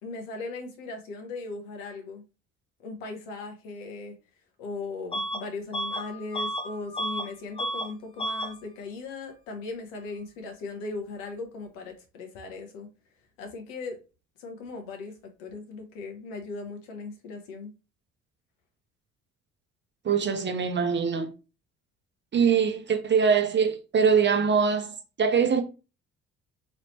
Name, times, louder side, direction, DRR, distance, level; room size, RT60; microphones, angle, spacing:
voice 1, 0.0-2.2 2.8-4.2 4.6-12.9 13.4-14.0 14.4-15.1 15.4-17.7, left 3 dB, 70° left, 1.0 m, -38 dB
Bus / Alarm, 5.1-5.4 5.7-7.3 7.6-7.9 8.2-8.5, equal, 15° left, 0.6 m, -31 dB
voice 2, 20.0-21.3 22.3-25.6, right 6 dB, 30° right, 0.7 m, -23 dB
3.2 x 2.9 x 3.0 m
figure-of-eight pair, 50°, 37 cm